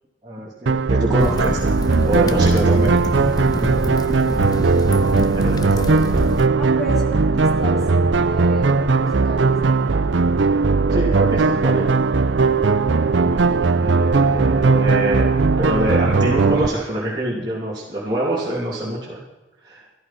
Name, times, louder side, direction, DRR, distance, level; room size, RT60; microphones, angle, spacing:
voice 1, 0.2-1.6 2.0-2.9 5.1-6.2 10.9-11.8 13.2-13.4 13.8-15.3 15.6-19.2 19.6-19.8, right 1 dB, 20° right, -7 dB, 2.9 m, -25 dB
sound 1, 0.7-16.7, right 4 dB, 75° right, 0.6 m, -18 dB
sound 2, 1.2-6.5, left 1 dB, 20° left, 0.6 m, -26 dB
voice 2, 4.9-5.3 6.6-7.8 8.2-9.8, left 1 dB, ahead, -3 dB, 3.5 m, -34 dB
14.0 x 13.0 x 5.8 m, 0.99 s
head